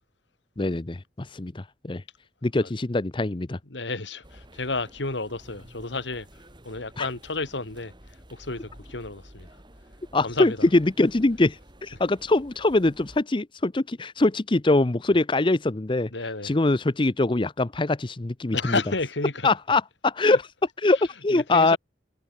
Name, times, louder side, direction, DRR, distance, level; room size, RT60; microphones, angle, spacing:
voice 1, 0.6-2.0 2.4-3.6 7.0-7.1 10.1-16.1 16.4-18.6 19.4-20.4 20.8-21.8, left 2 dB, 25° left, 0.7 m, -23 dB
voice 2, 3.7-9.6 10.2-10.7 16.1-16.5 18.5-19.5 20.2-20.4 20.9-21.0 21.3-21.8, left 3 dB, 80° left, 2.6 m, -32 dB
sound 1, 4.2-13.2, right 1 dB, 25° right, 5.7 m, -51 dB
head